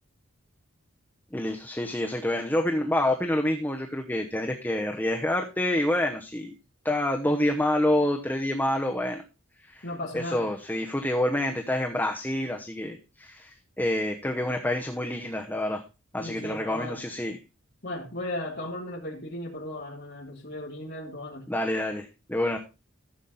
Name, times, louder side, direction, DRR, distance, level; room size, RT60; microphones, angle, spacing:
voice 1, 1.3-6.5 6.8-9.2 9.7-9.9 10.1-15.8 16.1-17.4 21.5-22.6, left 1 dB, 10° left, 3 dB, 0.9 m, -27 dB
voice 2, 9.8-10.5 16.2-17.0 17.8-21.4, left 1 dB, 45° left, -4 dB, 2.9 m, -36 dB
14.5 x 7.2 x 4.1 m, 0.29 s
head